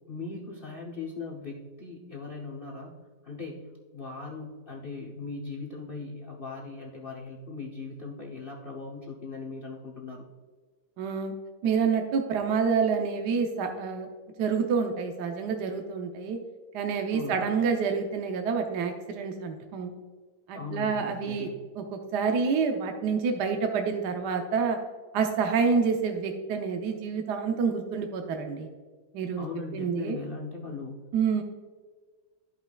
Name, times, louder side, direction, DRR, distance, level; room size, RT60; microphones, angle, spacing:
voice 1, 0.1-3.0 3.2-10.3 17.1-17.5 20.5-21.5 29.3-31.0, left 4 dB, 55° left, 0 dB, 0.6 m, -39 dB
voice 2, 11.0-11.3 11.6-14.1 14.4-16.4 16.7-19.9 20.5-21.5 21.8-24.8 25.1-28.7 29.1-29.4 29.7-30.2 31.1-31.4, right 5 dB, 65° right, 4 dB, 1.2 m, -28 dB
13.0 x 5.6 x 2.3 m, 1.5 s
omnidirectional pair, 2.1 m